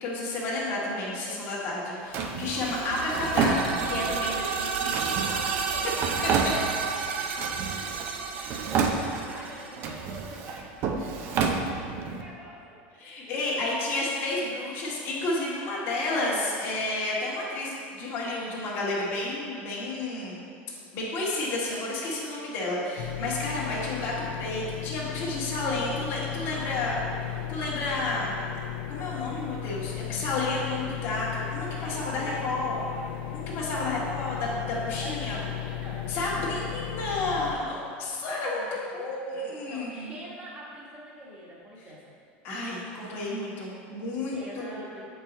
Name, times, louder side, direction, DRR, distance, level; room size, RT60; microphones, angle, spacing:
voice 1, 0.0-4.3 4.8-5.2 13.0-20.4 20.9-27.0 27.5-28.3 28.9-32.8 33.5-35.4 36.1-40.1 42.4-44.8, left 2 dB, 40° left, -6 dB, 1.6 m, -31 dB
voice 2, 1.6-2.0 4.2-4.4 4.8-13.8 26.5-27.5 31.8-34.4 35.0-36.1 38.5-39.0 39.3-42.0 44.3-45.0, right 1 dB, 15° right, -5 dB, 1.3 m, -45 dB
Drawer open or close, 2.1-4.2 4.9-7.0 7.4-8.2 8.4-9.4 9.8-12.2, right 5 dB, 40° right, 0.6 m, -30 dB
sound 1, 2.4-10.2, right 6 dB, 90° right, 0.6 m, -32 dB
sound 2, 23.0-37.6, left 12 dB, 70° left, 0.5 m, -35 dB
7.4 x 4.7 x 4.0 m, 2.4 s
supercardioid pair, 150°, 6 cm